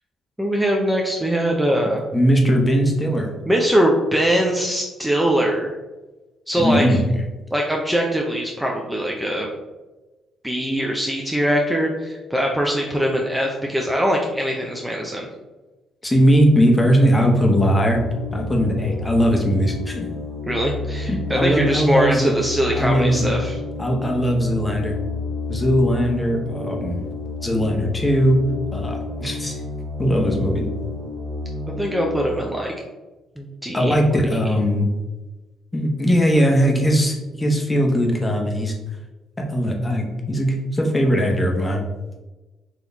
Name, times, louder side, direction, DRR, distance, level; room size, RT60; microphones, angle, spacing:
voice 1, 0.4-2.0 3.5-5.7 6.5-7.0 7.5-9.5 10.4-15.3 20.4-23.6 31.7-32.7 33.4-34.0, equal, 5° right, 0 dB, 0.6 m, -22 dB
voice 2, 2.1-3.3 6.6-7.0 16.0-18.0 18.3-20.1 21.1-22.3 22.7-23.3 23.8-24.9 25.5-27.0 27.4-28.4 28.7-29.6 30.0-30.6 33.7-34.9 35.7-38.7 39.4-41.8, equal, 15° left, 1 dB, 1.0 m, -19 dB
sound 1, 17.9-32.2, left 3 dB, 65° right, 1.2 m, -31 dB
4.0 x 3.0 x 3.9 m, 1.1 s
cardioid pair, 90°, 0 cm